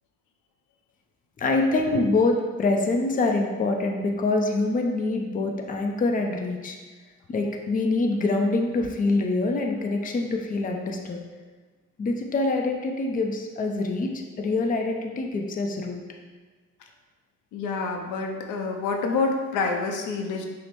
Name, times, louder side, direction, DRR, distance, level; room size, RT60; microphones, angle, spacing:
voice 1, 1.4-6.8 7.3-11.2 12.0-14.1 14.4-16.0, left 2 dB, 30° left, 2 dB, 0.5 m, -25 dB
voice 2, 17.5-20.5, left 4 dB, 85° left, 3 dB, 0.5 m, -27 dB
6.0 x 2.1 x 3.0 m, 1.3 s
cardioid pair, 90°, 30 cm